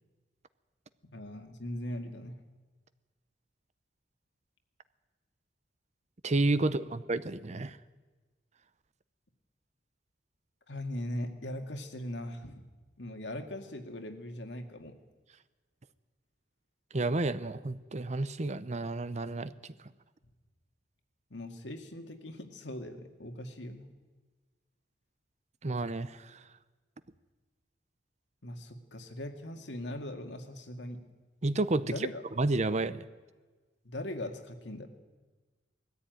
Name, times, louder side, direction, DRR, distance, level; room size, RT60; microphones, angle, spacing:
voice 1, 1.1-2.4 6.8-6.9 7.5-7.6 10.7-12.7 13.0-15.0 21.3-23.9 28.4-31.0 31.8-32.2 33.8-34.9, left 1 dB, 75° left, 5 dB, 2.1 m, -40 dB
voice 2, 6.2-7.8 16.9-19.5 25.6-26.4 31.4-32.1 32.4-33.1, right 2 dB, 40° right, 14 dB, 0.7 m, -30 dB
19.5 x 14.0 x 9.3 m, 1.3 s
head